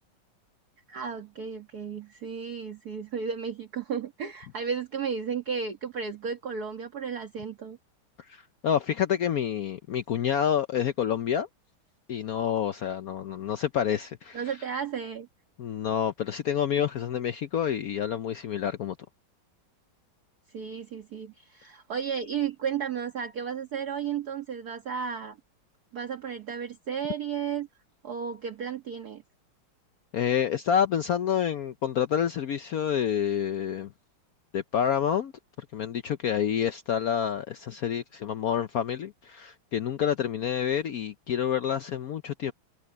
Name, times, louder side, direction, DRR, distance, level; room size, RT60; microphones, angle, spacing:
voice 1, 0.9-7.8 14.3-15.3 20.5-25.4 25.9-27.7 28.0-29.2, right 7 dB, 50° right, 1.9 m, -33 dB
voice 2, 8.3-11.5 12.1-14.6 15.6-19.0 30.1-33.9 34.5-35.3 35.6-42.5, left 9 dB, 70° left, 0.8 m, -28 dB
omnidirectional pair, 2.3 m